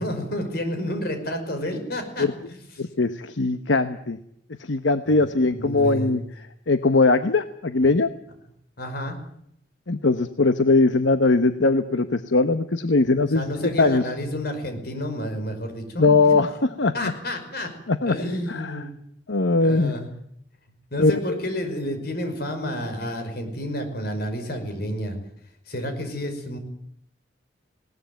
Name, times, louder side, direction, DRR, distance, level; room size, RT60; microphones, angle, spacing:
voice 1, 0.0-2.9 5.1-6.2 8.8-9.2 13.3-16.4 16.9-17.7 18.1-18.9 19.6-20.1 20.9-25.2 25.7-26.6, equal, 55° left, 6 dB, 5.5 m, -30 dB
voice 2, 2.8-4.2 4.6-6.2 6.7-8.1 9.9-14.0 16.0-16.5 16.8-17.1 17.9-18.2 18.5-18.8 19.3-19.9 21.0-21.2, left 3 dB, 75° left, 10 dB, 1.0 m, -20 dB
20.5 x 18.5 x 9.2 m, 0.72 s
head